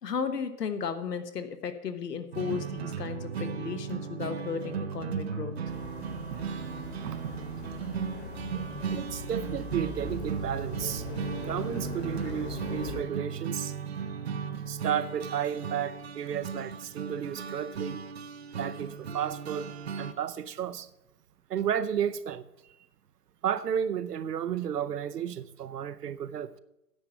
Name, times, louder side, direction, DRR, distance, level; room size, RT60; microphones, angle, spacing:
voice 1, 0.0-5.5, left 6 dB, 85° left, 1.3 m, -34 dB
sound 1, 2.3-20.1, right 6 dB, 45° right, 0.5 m, -36 dB
sound 2, 5.7-13.0, left 3 dB, 35° left, 1.3 m, -41 dB
voice 2, 6.3-6.6 7.0-7.3 8.5-11.1 11.4-13.8 14.7-18.1 18.6-20.9 21.5-22.4 23.4-26.5, right 9 dB, 80° right, 0.8 m, -33 dB
9.7 x 5.8 x 7.7 m
hypercardioid pair, 155°, 47 cm